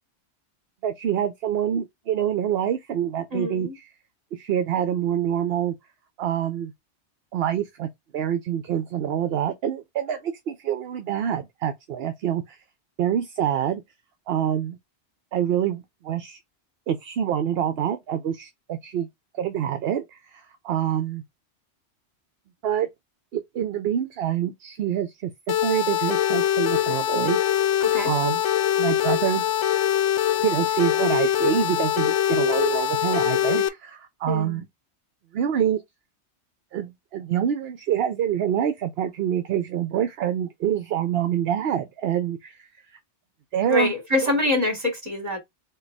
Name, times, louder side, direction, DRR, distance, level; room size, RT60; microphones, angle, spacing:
voice 1, 0.8-3.8 4.3-5.7 6.2-6.7 7.3-12.6 13.0-13.8 14.3-14.8 15.3-16.4 16.9-19.1 19.3-21.2 22.6-22.9 23.3-25.3 25.6-27.4 28.0-28.4 28.8-29.5 30.4-34.6 35.3-35.8 36.7-42.7 43.5-43.9 44.2-44.3, right 9 dB, 65° right, 0.8 m, -26 dB
voice 2, 3.3-3.7 27.8-28.1 34.3-34.6 43.7-45.4, left 2 dB, 35° right, 2.5 m, -25 dB
sound 1, 25.5-33.7, left 11 dB, 85° left, 0.9 m, -23 dB
4.5 x 2.3 x 4.6 m
omnidirectional pair, 1.2 m